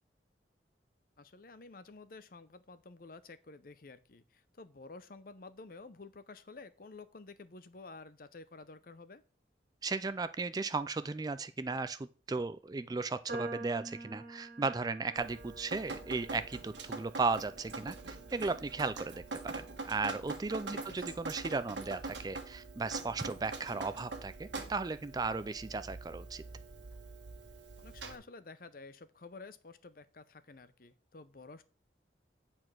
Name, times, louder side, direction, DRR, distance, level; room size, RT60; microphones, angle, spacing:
voice 1, 1.2-9.2 20.7-21.1 27.8-31.6, left 3 dB, 50° left, 13 dB, 0.7 m, -51 dB
voice 2, 9.8-26.4, right 3 dB, 20° right, 13 dB, 0.3 m, -36 dB
sound 1, 13.3-19.6, right 2 dB, 45° right, 2.2 m, -47 dB
Drip, 15.2-28.2, right 3 dB, 80° right, 1.4 m, -44 dB
8.7 x 4.3 x 6.1 m, 0.38 s
head